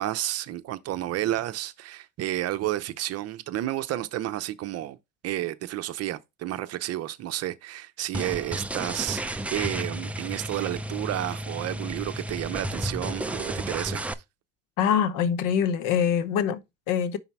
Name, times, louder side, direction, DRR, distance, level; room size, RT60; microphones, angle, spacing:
voice 1, 0.0-5.0 5.2-14.0, right 14 dB, 50° right, 0.7 m, -31 dB
sound 1, 8.1-14.1, right 1 dB, 5° right, 0.3 m, -33 dB
voice 2, 14.8-17.2, left 8 dB, 75° left, 0.9 m, -24 dB
5.6 x 4.1 x 4.6 m
cardioid pair, 125°, 32 cm